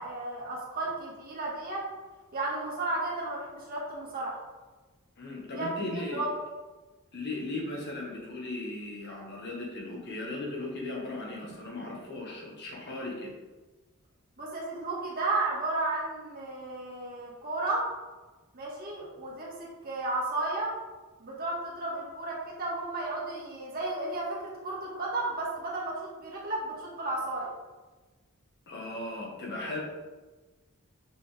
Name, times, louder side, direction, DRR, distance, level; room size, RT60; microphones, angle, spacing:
voice 1, 0.0-1.8 2.3-4.4 5.5-5.7 6.1-6.3 14.4-17.9 18.5-20.7 21.2-27.5, right 2 dB, 45° right, -4 dB, 1.8 m, -33 dB
voice 2, 5.2-6.3 7.1-13.3 28.7-29.8, left 2 dB, 50° left, -2 dB, 1.5 m, -37 dB
6.3 x 5.3 x 3.4 m, 1.2 s
head